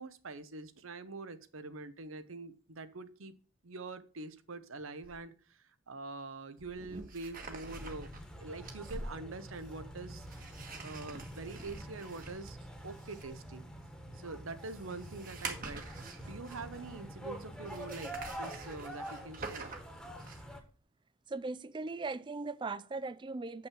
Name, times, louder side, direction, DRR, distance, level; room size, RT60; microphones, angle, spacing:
voice 1, 0.0-3.3 3.6-8.1 8.4-10.3 10.8-12.6 12.8-13.6 14.1-15.9 16.3-19.7, right 3 dB, 75° right, 0.9 m, -45 dB
sound 1, 5.0-5.2 6.6-16.9 17.7-20.6, right 3 dB, 45° right, 1.4 m, -47 dB
sound 2, 7.7-20.6, equal, 5° left, 1.3 m, -47 dB
voice 2, 21.3-23.7, right 3 dB, 25° right, 0.4 m, -39 dB
7.6 x 6.0 x 6.3 m
head